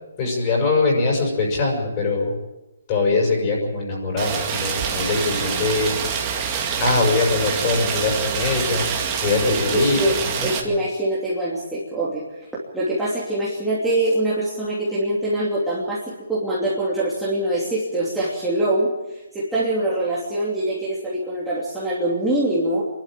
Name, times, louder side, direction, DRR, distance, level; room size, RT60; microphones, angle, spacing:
voice 1, 0.2-2.3 2.9-6.0 6.5-8.9 9.2-10.0 10.4-10.5, left 3 dB, 25° left, -1 dB, 6.2 m, -22 dB
Rain, 4.2-10.6, right 6 dB, 20° right, 2.2 m, -26 dB
voice 2, 9.4-12.2 12.5-16.0 16.3-18.9 19.3-22.8, right 1 dB, 5° right, -9 dB, 2.9 m, -24 dB
25.0 x 12.0 x 9.1 m, 1.0 s
hypercardioid pair, 170°, 0 cm